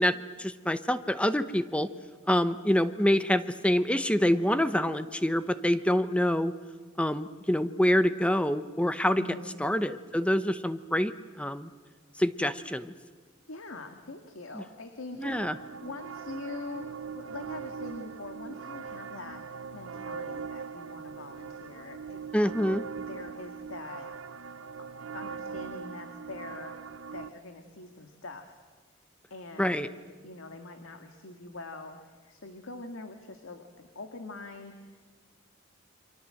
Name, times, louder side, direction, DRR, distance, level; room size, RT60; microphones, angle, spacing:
voice 1, 0.0-1.9 2.3-6.5 7.0-9.2 9.6-11.7 12.2-12.9 14.5-14.6 15.1-15.6 22.3-22.8 29.6-29.9, equal, 5° left, 12 dB, 0.8 m, -26 dB
voice 2, 9.2-9.5 13.5-15.3 15.8-19.4 19.7-22.3 22.8-24.6 25.1-26.8 27.1-28.6 29.3-29.9 30.2-35.0, left 3 dB, 85° left, 6 dB, 2.0 m, -44 dB
sound 1, 15.2-27.3, right 6 dB, 80° right, 0.8 m, -41 dB
29.0 x 24.0 x 7.7 m, 1.5 s
head